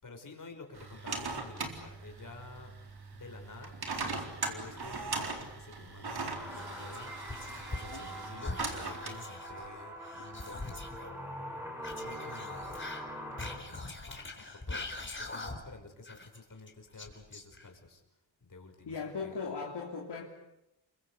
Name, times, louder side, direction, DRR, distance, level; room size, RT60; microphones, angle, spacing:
voice 1, 0.0-2.8 3.1-11.7 12.0-12.9 13.4-18.0 18.4-19.0 19.2-19.4, left 3 dB, 45° left, 3 dB, 5.9 m, -50 dB
sound 1, 0.7-9.2, right 3 dB, 55° right, 4.1 m, -40 dB
sound 2, 6.4-13.6, equal, 5° right, 6.1 m, -43 dB
Whispering, 6.5-8.1 8.4-11.1 11.8-15.8 16.1-17.9, left 2 dB, 25° left, 4.3 m, -43 dB
voice 2, 18.8-20.2, left 5 dB, 60° left, -1 dB, 3.3 m, -38 dB
29.0 x 24.5 x 8.4 m, 0.88 s
wide cardioid pair, 115°, 46 cm